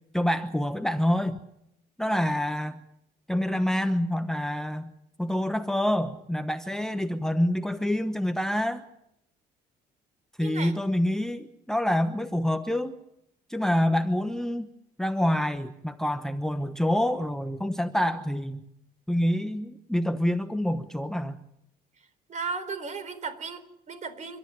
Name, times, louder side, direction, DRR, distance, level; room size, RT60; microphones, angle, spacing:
voice 1, 0.1-1.4 2.0-2.8 3.3-4.9 5.2-8.8 10.4-13.0 13.5-14.7 15.0-18.7 19.1-21.4, left 1 dB, 5° left, 9 dB, 1.0 m, -27 dB
voice 2, 10.4-10.7 22.3-24.4, right 5 dB, 45° right, 10 dB, 4.1 m, -35 dB
29.0 x 13.0 x 9.5 m, 0.80 s
cardioid pair, 110°, 17 cm